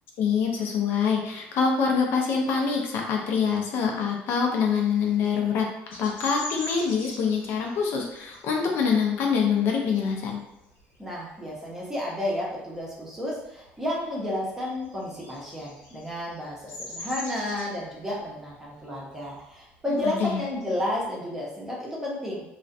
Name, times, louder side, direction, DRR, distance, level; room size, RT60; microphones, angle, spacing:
voice 1, 0.2-10.4 20.0-20.4, left 6 dB, 60° left, 0 dB, 0.4 m, -25 dB
Bird vocalization bird call bird song, 5.9-11.1 11.5-11.9 12.2-13.4 13.7-21.0, left 1 dB, 90° left, 1.0 m, -42 dB
voice 2, 11.0-22.4, left 1 dB, 10° right, -5 dB, 0.6 m, -32 dB
2.3 x 2.1 x 2.6 m, 0.87 s
cardioid pair, 150°, 4 cm